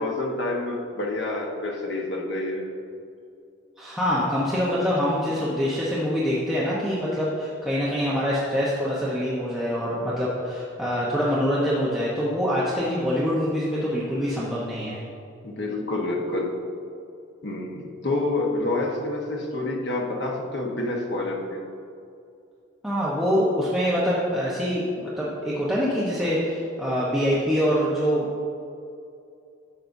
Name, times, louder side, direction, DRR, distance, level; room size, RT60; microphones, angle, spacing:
voice 1, 0.0-2.7 15.4-16.5 17.4-21.6, left 2 dB, 60° left, 0 dB, 1.2 m, -28 dB
voice 2, 3.8-15.0 22.8-28.4, equal, ahead, -8 dB, 1.0 m, -25 dB
11.5 x 7.5 x 2.7 m, 2.5 s
head